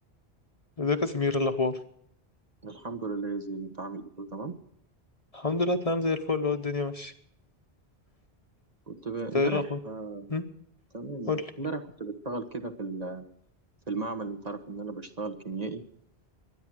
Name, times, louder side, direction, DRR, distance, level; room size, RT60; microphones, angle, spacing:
voice 1, 0.8-1.8 5.3-7.1 9.3-9.8 10.3-10.4 11.3-11.4, left 3 dB, 35° left, 7 dB, 1.0 m, -27 dB
voice 2, 2.6-4.5 8.9-10.4 10.9-13.3 13.9-15.8, right 3 dB, 40° right, 5 dB, 1.4 m, -36 dB
23.0 x 10.0 x 6.3 m, 0.71 s
omnidirectional pair, 1.1 m